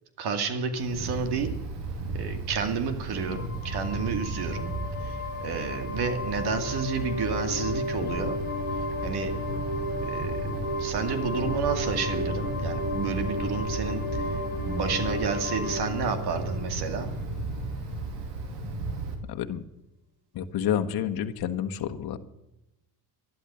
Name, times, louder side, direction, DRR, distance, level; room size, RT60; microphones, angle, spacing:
voice 1, 0.2-1.6 2.1-4.7 5.0-8.4 9.0-9.3 10.0-10.4 10.8-14.3 14.6-17.1, right 5 dB, 60° right, 8 dB, 2.4 m, -30 dB
Wind, 0.7-19.1, right 2 dB, 90° right, 2.9 m, -35 dB
sound 1, 3.2-17.6, left 2 dB, 25° right, 5.7 m, -34 dB
voice 2, 19.2-19.6 20.3-22.2, left 9 dB, 60° left, 8 dB, 1.3 m, -29 dB
12.0 x 12.0 x 6.9 m, 0.92 s
cardioid pair, 100°, 43 cm